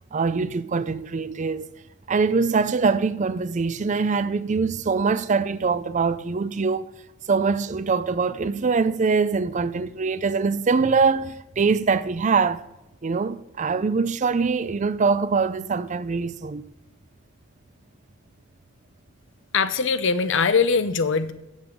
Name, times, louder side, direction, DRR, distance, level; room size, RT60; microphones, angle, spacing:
voice 1, 0.1-1.7 2.1-6.9 7.3-12.6 13.0-16.6, right 4 dB, 35° right, 0.4 m, -23 dB
voice 2, 19.5-21.3, left 5 dB, 60° left, 0.7 m, -21 dB
7.8 x 7.2 x 7.4 m
head